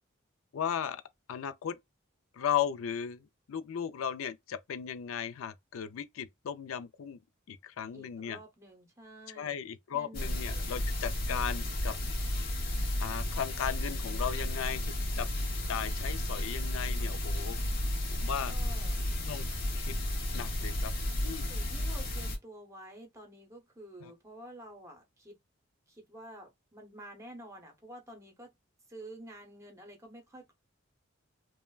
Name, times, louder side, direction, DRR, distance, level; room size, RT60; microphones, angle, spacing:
voice 1, 0.5-1.0 1.3-1.8 2.3-7.2 7.5-8.4 9.3-12.0 13.0-15.3 15.7-17.6 18.1-18.5 19.3-19.5 19.7-19.9 20.3-20.9 21.2-21.5 24.0-24.1, left 8 dB, 85° left, 0.4 m, -36 dB
voice 2, 7.9-9.6 9.9-10.7 18.5-19.1 21.4-25.4 25.9-28.5 28.9-30.5, right 1 dB, 15° right, 0.8 m, -50 dB
sound 1, 10.1-22.4, left 1 dB, 45° left, 0.8 m, -33 dB
3.2 x 2.1 x 2.3 m
head